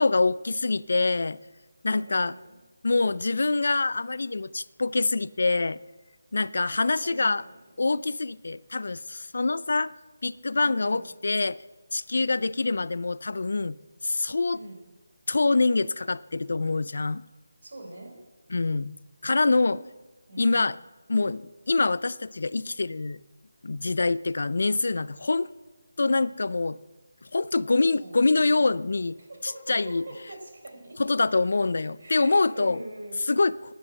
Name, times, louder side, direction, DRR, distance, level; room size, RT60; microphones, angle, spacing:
voice 1, 0.0-1.4 1.8-2.3 2.8-5.8 6.3-7.4 7.8-9.9 10.2-11.6 11.9-13.8 14.0-14.6 15.3-17.2 18.5-19.0 19.2-19.8 20.4-20.8 21.1-23.2 23.6-25.5 26.0-26.8 27.2-29.2 29.7-30.0 31.0-32.8 33.3-33.7, left 3 dB, 60° left, 19 dB, 0.4 m, -25 dB
voice 2, 1.9-2.6 6.6-7.5 10.6-11.1 14.5-14.8 17.6-18.2 19.7-19.8 20.3-20.7 27.8-28.7 29.2-31.1 32.0-33.2, right 1 dB, 60° right, 2 dB, 4.4 m, -44 dB
11.0 x 9.7 x 7.5 m, 1.2 s
figure-of-eight pair, 175°, 0 cm